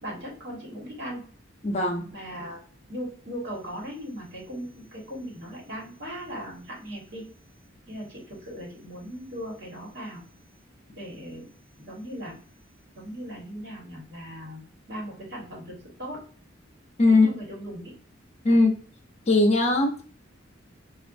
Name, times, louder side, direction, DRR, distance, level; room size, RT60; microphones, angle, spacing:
voice 1, 0.0-1.2 2.1-2.6 2.9-7.2 7.9-10.2 10.9-11.5 11.8-12.4 12.9-14.6 14.9-16.2 17.0-17.9 18.5-18.6, equal, 60° right, -3 dB, 1.6 m, -38 dB
voice 2, 1.6-2.1 17.0-17.3 18.4-18.7 19.3-20.0, left 2 dB, 35° left, 2 dB, 0.6 m, -19 dB
4.2 x 2.4 x 2.5 m, 0.43 s
head